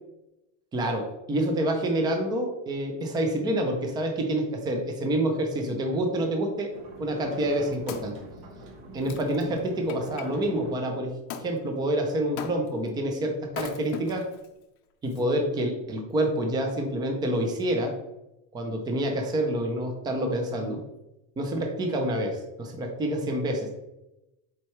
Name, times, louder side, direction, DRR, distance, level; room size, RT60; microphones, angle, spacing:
voice 1, 0.7-6.7 7.0-8.2 8.9-11.1 11.4-14.3 15.0-18.0 18.5-20.9 21.4-23.7, right 1 dB, 10° right, 3 dB, 0.4 m, -27 dB
sound 1, 6.7-10.7, right 2 dB, 55° right, 1.5 m, -45 dB
Wood, 7.3-10.3 11.3-11.5 12.4-12.9 13.5-14.5 15.1-15.2, left 8 dB, 40° left, 0.6 m, -39 dB
7.4 x 4.6 x 3.1 m, 0.93 s
cardioid pair, 160°, 49 cm